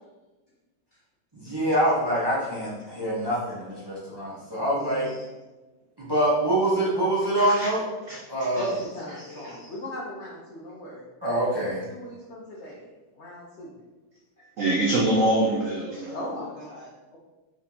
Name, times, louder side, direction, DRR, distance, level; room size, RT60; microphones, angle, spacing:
voice 1, 1.3-5.1 6.0-7.8 8.3-8.7 11.2-11.8, right 1 dB, 30° right, -7 dB, 0.4 m, -25 dB
voice 2, 3.0-3.4 4.6-5.1 8.6-11.0 11.7-12.8 13.1-13.8 14.4-14.5 16.1-17.2, left 1 dB, 70° left, -4 dB, 0.6 m, -39 dB
voice 3, 7.4-7.7 8.1-8.2 14.6-16.2, right 1 dB, 80° right, -2 dB, 0.7 m, -24 dB
4.5 x 4.1 x 2.8 m, 1.2 s
omnidirectional pair, 2.1 m